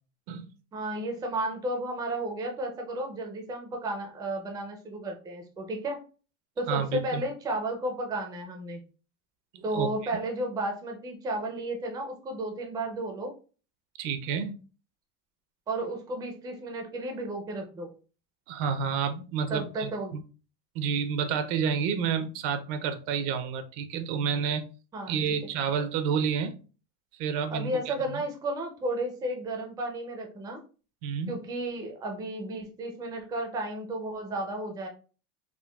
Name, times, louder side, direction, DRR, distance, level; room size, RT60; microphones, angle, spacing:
voice 1, 0.7-6.0 6.6-8.8 9.6-13.3 15.7-17.9 19.5-20.1 24.9-25.2 27.5-30.6 31.3-34.9, right 1 dB, 10° right, 2 dB, 0.3 m, -33 dB
voice 2, 6.7-7.2 9.5-10.1 14.0-14.6 18.5-20.2 20.7-24.6 25.1-26.6 27.1-28.2 31.0-31.3, right 7 dB, 75° right, 9 dB, 0.6 m, -30 dB
3.7 x 2.1 x 2.2 m, 0.36 s
cardioid pair, 140°, 36 cm